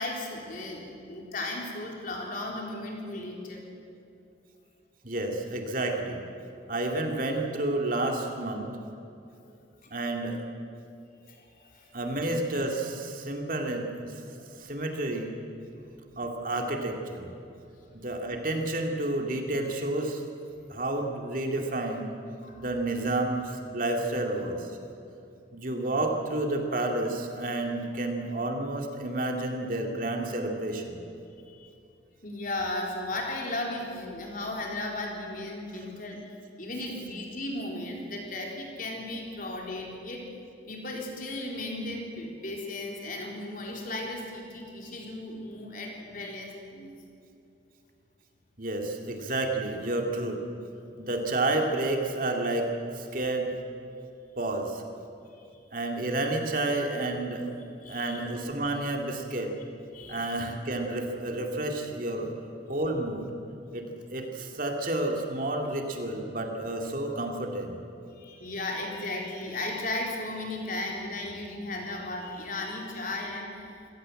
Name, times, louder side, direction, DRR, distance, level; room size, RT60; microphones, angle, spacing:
voice 1, 0.0-3.7 11.3-11.9 22.4-22.6 31.5-31.7 32.2-36.2 36.6-40.2 40.7-46.9 55.3-55.4 57.8-58.2 59.9-60.4 68.1-73.8, left 2 dB, 45° left, 0 dB, 4.1 m, -36 dB
voice 2, 5.0-6.2 6.7-8.7 9.9-10.4 11.9-14.2 14.6-15.4 16.2-17.3 18.0-20.2 20.7-22.1 22.6-24.7 25.5-31.0 48.6-50.4 51.0-53.5 54.4-54.8 55.7-57.5 57.9-59.5 60.1-62.3 62.7-63.3 63.7-67.8, right 2 dB, 45° right, 2 dB, 2.5 m, -30 dB
26.0 x 17.5 x 7.8 m, 2.7 s
head